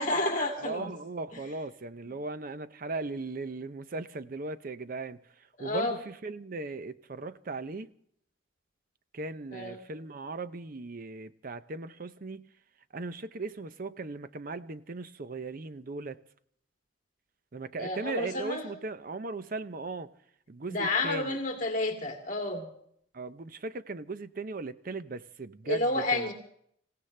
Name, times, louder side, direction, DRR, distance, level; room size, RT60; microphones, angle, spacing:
voice 1, 0.0-0.9 5.6-6.0 9.5-9.8 17.8-18.7 20.7-22.7 25.6-26.3, left 2 dB, 40° left, 2.5 m, -30 dB
voice 2, 0.6-7.9 9.1-12.5 12.9-16.2 17.5-20.1 20.5-21.4 23.1-26.3, right 3 dB, 45° right, 0.6 m, -38 dB
26.5 x 16.5 x 3.3 m
head